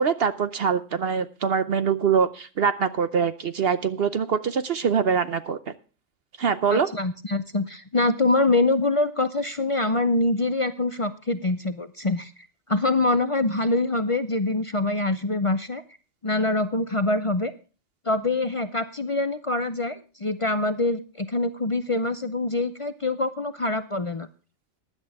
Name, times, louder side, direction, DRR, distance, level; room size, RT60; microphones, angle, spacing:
voice 1, 0.0-5.6 6.4-6.9, right 6 dB, 55° right, 12 dB, 0.8 m, -23 dB
voice 2, 6.7-15.8 16.2-17.5 18.1-24.3, left 2 dB, 40° left, 10 dB, 0.5 m, -25 dB
15.5 x 11.0 x 3.5 m, 0.35 s
omnidirectional pair, 1.4 m